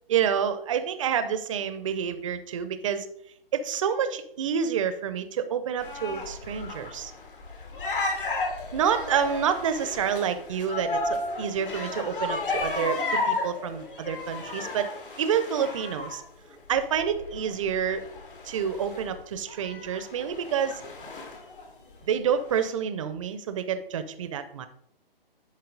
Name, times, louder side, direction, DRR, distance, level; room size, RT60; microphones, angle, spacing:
voice 1, 0.1-3.1 3.5-7.1 8.7-14.9 15.2-16.2 16.7-18.0 18.4-20.8 22.1-24.7, right 8 dB, 35° right, 11 dB, 0.6 m, -28 dB
sound 1, 5.8-16.2 16.7-21.7 21.9-22.0 22.4-22.7, left 2 dB, 60° left, 2.3 m, -33 dB
10.5 x 4.2 x 3.8 m, 0.70 s
figure-of-eight pair, 135°, 30 cm